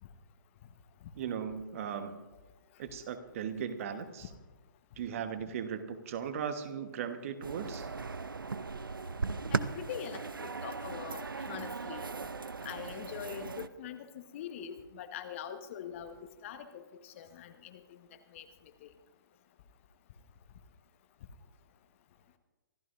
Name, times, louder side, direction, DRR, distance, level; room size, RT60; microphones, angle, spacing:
voice 1, 1.2-2.2 2.8-4.3 5.0-7.9, right 7 dB, 40° right, 9 dB, 1.2 m, -37 dB
sound 1, 7.4-13.7, right 4 dB, 80° right, 0.7 m, -38 dB
voice 2, 9.5-12.1 12.6-17.8 18.3-18.5 18.8-18.9, left 9 dB, 40° left, 9 dB, 1.2 m, -43 dB
26.0 x 14.0 x 2.6 m, 1.1 s
figure-of-eight pair, 130°, 11 cm